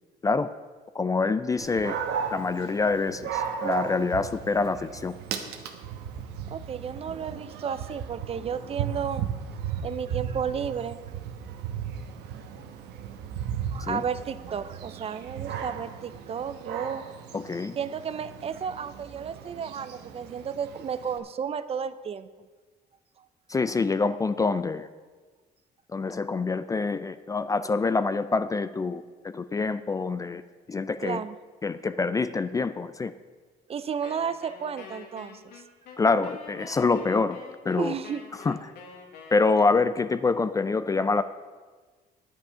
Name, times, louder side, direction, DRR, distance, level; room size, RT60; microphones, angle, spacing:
voice 1, 0.9-2.0 2.3-5.2 13.9-14.0 17.3-17.8 23.5-24.9 25.9-30.4 30.7-31.2 31.6-33.1 36.0-37.4 37.7-37.9 38.4-38.7 39.3-41.2, left 4 dB, 20° left, 13 dB, 0.4 m, -26 dB
Dog, 1.6-21.2, right 7 dB, 90° right, 1.1 m, -36 dB
voice 2, 6.5-9.3 9.8-11.0 13.7-17.1 17.8-22.3 23.2-23.3 31.0-31.4 33.7-35.6 37.8-38.3, right 7 dB, 35° right, 13 dB, 0.5 m, -33 dB
Wind instrument woodwind instrument, 34.0-40.0, left 5 dB, 75° left, 1.8 m, -46 dB
9.8 x 9.0 x 5.6 m, 1.4 s
cardioid pair, 110°, 17 cm